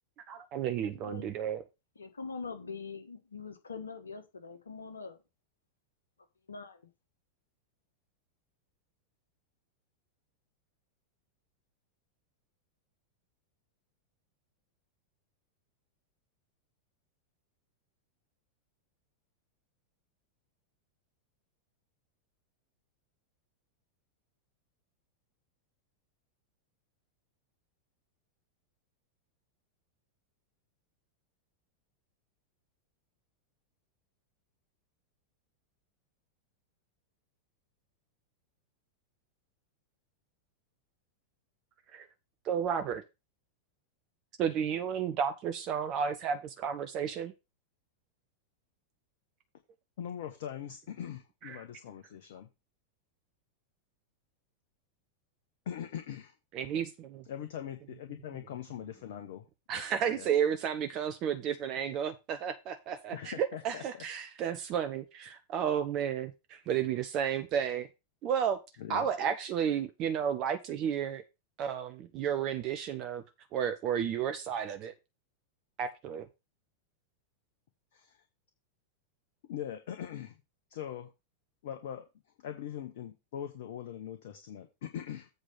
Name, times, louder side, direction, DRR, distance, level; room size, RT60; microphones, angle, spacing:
voice 1, 0.3-1.6 41.9-42.0 42.5-43.0 44.4-47.3 51.5-51.6 56.5-57.2 59.7-67.9 68.2-68.6 68.9-71.2 71.6-73.2 73.5-74.9 75.8-76.3, right 8 dB, 35° right, 0.8 m, -32 dB
voice 2, 0.9-1.3 1.9-5.2 6.5-6.8, left 4 dB, 75° left, 1.4 m, -43 dB
voice 3, 50.0-52.5 55.7-56.3 57.2-59.5 59.7-59.8 60.1-60.3 63.1-64.0 68.8-69.1 77.9-78.3 79.4-80.3 80.7-81.1 81.6-82.1 82.4-85.3, left 10 dB, 55° left, 1.0 m, -41 dB
8.0 x 4.9 x 5.6 m
figure-of-eight pair, 90°, 0 cm